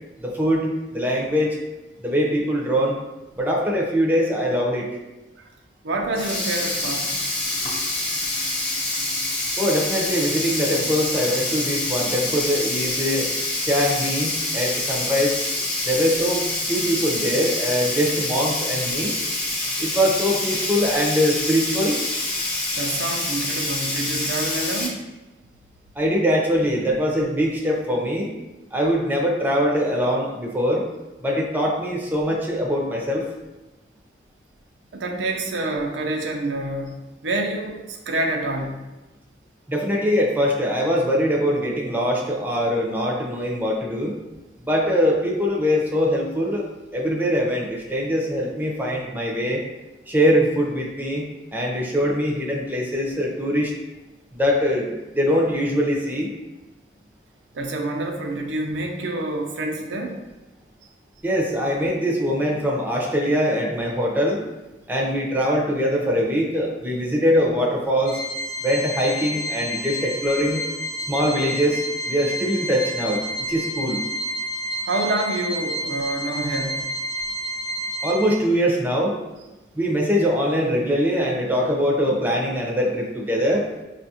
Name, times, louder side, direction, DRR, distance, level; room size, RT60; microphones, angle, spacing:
voice 1, 0.2-1.6 2.0-3.0 3.4-4.9 9.6-13.3 13.6-15.4 15.9-19.1 19.8-22.0 26.0-28.3 28.7-30.8 31.2-33.3 39.7-44.1 44.6-46.6 46.9-49.6 50.1-51.2 51.5-53.7 54.3-56.3 61.2-64.4 64.9-68.2 68.6-70.6 71.1-74.0 78.0-79.2 79.7-83.6, equal, 10° right, -2 dB, 0.5 m, -22 dB
voice 2, 5.8-7.1 22.7-25.0 34.9-37.0 37.2-38.8 57.5-60.2 74.8-76.9, right 2 dB, 85° right, 2 dB, 0.5 m, -27 dB
Sink (filling or washing), 6.0-24.9, left 2 dB, 35° left, 1.0 m, -26 dB
Organ, 68.1-78.7, equal, 65° left, 0.6 m, -30 dB
4.9 x 2.4 x 2.7 m, 1.1 s
head